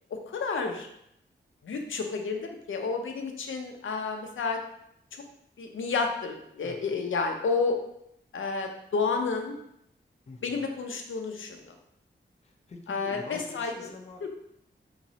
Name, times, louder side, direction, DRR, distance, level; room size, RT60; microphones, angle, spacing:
voice 1, 0.1-0.9 1.6-4.6 5.6-7.8 8.3-9.5 10.4-11.7 12.9-13.9 14.2-14.3, left 4 dB, 85° left, 3 dB, 0.5 m, -30 dB
voice 2, 10.3-10.6 12.7-14.3, left 2 dB, 35° left, 3 dB, 0.5 m, -44 dB
3.9 x 2.9 x 2.7 m, 0.74 s
wide cardioid pair, 120°, 20 cm